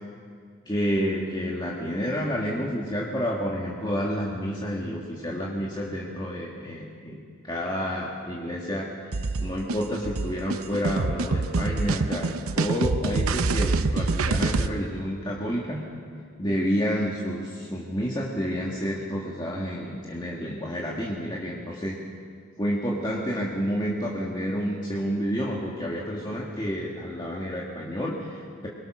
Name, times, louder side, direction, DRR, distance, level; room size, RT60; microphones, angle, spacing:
voice 1, 0.7-7.2 7.4-8.9 9.4-15.8 16.4-22.0 22.6-28.7, equal, 20° left, -4 dB, 2.0 m, -29 dB
sound 1, 9.1-14.7, right 3 dB, 85° right, 0.8 m, -26 dB
23.0 x 22.5 x 6.3 m, 2.1 s
head